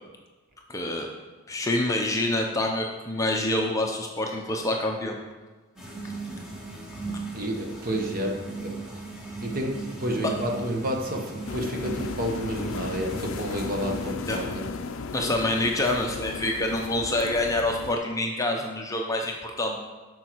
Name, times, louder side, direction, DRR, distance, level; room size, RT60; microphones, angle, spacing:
voice 1, 0.7-1.1 1.5-5.2 6.0-6.1 10.2-10.3 14.3-14.4 15.1-19.8, left 1 dB, 15° left, 1 dB, 0.7 m, -26 dB
sound 1, 5.8-14.1, right 3 dB, 5° right, 1.4 m, -38 dB
voice 2, 7.3-8.9 9.4-14.7, equal, 40° right, 2 dB, 1.0 m, -30 dB
sound 2, 11.5-18.0, left 4 dB, 60° left, 0.4 m, -35 dB
8.8 x 6.3 x 4.6 m, 1.3 s
head